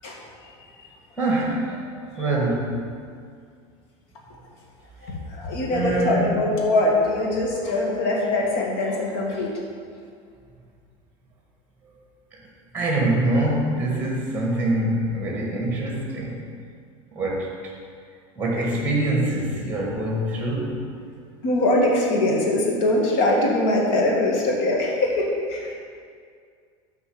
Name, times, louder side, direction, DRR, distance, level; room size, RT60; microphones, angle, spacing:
voice 1, 0.0-0.5 0.8-0.9 5.0-9.6 21.4-25.7, left 1 dB, 70° left, -1 dB, 2.1 m, -22 dB
voice 2, 1.2-2.8 5.7-6.4 12.7-16.4 17.1-17.5 18.4-20.8, right 1 dB, 10° right, -2 dB, 1.8 m, -24 dB
8.4 x 4.8 x 7.1 m, 2.2 s
supercardioid pair, 120°, 15 cm